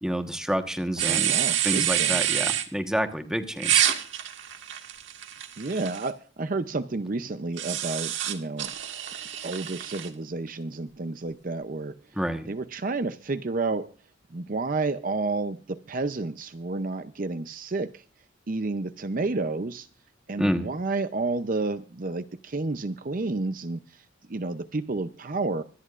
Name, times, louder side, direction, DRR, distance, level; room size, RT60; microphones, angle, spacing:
voice 1, 0.0-1.3 1.6-3.8 12.2-12.5 20.4-20.7, equal, 5° right, 1.2 m, -28 dB
sound 1, 1.0-2.7 3.6-6.1 7.6-10.1, right 11 dB, 65° right, 1.5 m, -27 dB
voice 2, 1.1-2.3 5.6-8.7 9.4-12.0 12.5-13.9 14.3-18.0 18.5-19.9 20.3-24.0 24.3-25.6, right 3 dB, 40° right, 0.6 m, -30 dB
25.0 x 10.0 x 2.5 m
head